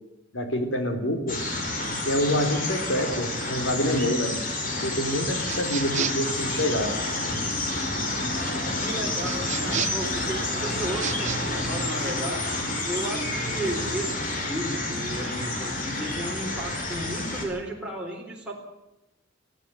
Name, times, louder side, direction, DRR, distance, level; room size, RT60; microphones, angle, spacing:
voice 1, 0.3-1.4 2.0-4.4 4.8-6.9, equal, 90° left, 6 dB, 3.9 m, -26 dB
sound 1, 1.3-17.4, left 2 dB, 45° left, 5.0 m, -29 dB
sound 2, 5.4-6.3 9.2-10.1 10.9-11.4, right 9 dB, 40° right, 0.7 m, -32 dB
voice 2, 8.8-12.5 12.9-18.5, right 1 dB, 5° right, -2 dB, 4.0 m, -34 dB
22.0 x 15.0 x 7.9 m, 0.93 s
head